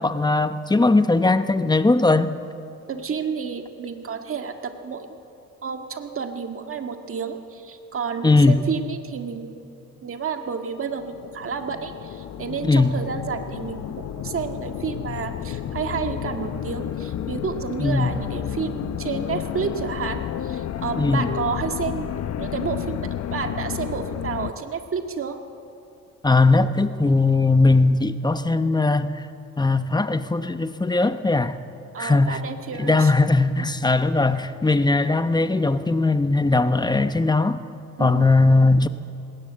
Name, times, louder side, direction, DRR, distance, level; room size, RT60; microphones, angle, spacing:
voice 1, 0.0-2.3 8.2-8.7 12.7-13.0 17.8-18.1 21.0-21.3 26.2-29.2 29.6-31.6 32.0-32.4 32.8-37.6 38.0-38.9, left 3 dB, 15° left, 11 dB, 0.9 m, -19 dB
voice 2, 2.9-5.2 5.6-9.5 10.0-25.4 31.9-33.1 33.6-33.7 38.0-38.5, right 6 dB, 45° right, 5 dB, 1.9 m, -30 dB
sound 1, 10.9-24.5, left 10 dB, 60° left, 0.8 m, -31 dB
20.0 x 17.5 x 7.9 m, 2.6 s
cardioid pair, 90°, 30 cm